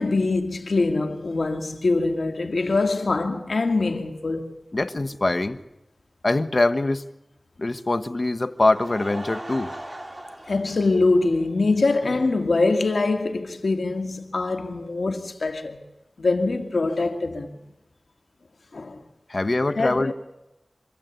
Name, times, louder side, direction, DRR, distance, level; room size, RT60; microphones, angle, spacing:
voice 1, 0.0-4.5 10.5-15.8 16.2-17.6 18.7-19.0 19.8-20.1, left 3 dB, 80° left, 1.9 m, -23 dB
voice 2, 4.7-5.6 6.2-7.0 7.6-9.7 19.3-20.1, left 2 dB, 50° left, 1.2 m, -23 dB
Laughter / Crowd, 8.4-11.9 12.2-12.3 12.8-12.9 13.1-13.2, right 1 dB, 30° right, 3.2 m, -39 dB
26.5 x 14.5 x 8.2 m
wide cardioid pair, 60°, 0 cm